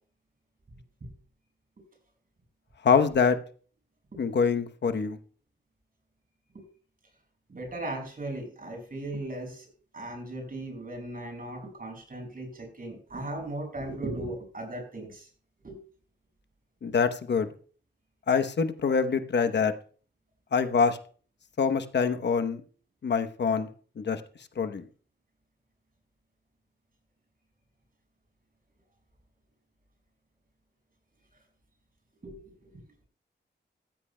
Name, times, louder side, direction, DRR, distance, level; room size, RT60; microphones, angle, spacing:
voice 1, 2.8-3.4 4.2-5.2 16.8-17.5 18.3-19.7 20.5-21.0 21.6-22.6 23.0-23.7 24.0-24.2 24.6-24.8, left 5 dB, 70° left, 9 dB, 0.9 m, -25 dB
voice 2, 7.5-9.7 9.9-15.3 15.6-15.8 32.2-32.7, right 1 dB, 50° right, 3 dB, 5.5 m, -37 dB
15.0 x 14.0 x 2.2 m, 0.42 s
wide cardioid pair, 85°, 19 cm